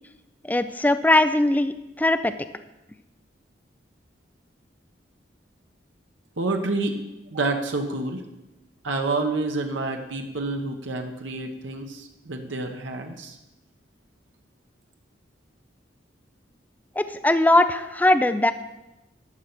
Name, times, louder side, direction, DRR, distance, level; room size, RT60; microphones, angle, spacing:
voice 1, 0.4-2.3 17.0-18.5, left 1 dB, 10° left, 10 dB, 0.4 m, -20 dB
voice 2, 6.4-7.0 7.3-8.2 8.8-13.4, right 2 dB, 90° right, 4 dB, 1.0 m, -28 dB
12.0 x 5.8 x 6.7 m, 0.96 s
head